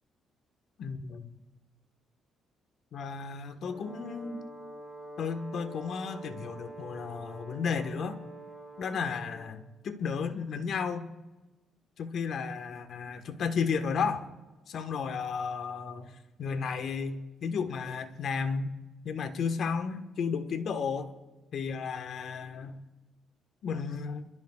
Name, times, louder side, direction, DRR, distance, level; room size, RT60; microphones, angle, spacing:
voice 1, 0.8-1.3 2.9-4.4 5.2-8.2 8.8-11.1 12.0-14.3 14.7-18.7 19.0-21.1 21.5-22.8 23.6-24.3, left 5 dB, 65° left, 7 dB, 1.4 m, -33 dB
Brass instrument, 3.6-9.6, right 2 dB, 30° left, 4.0 m, -46 dB
27.0 x 14.0 x 2.4 m, 1.1 s
cardioid pair, 80°, 0 cm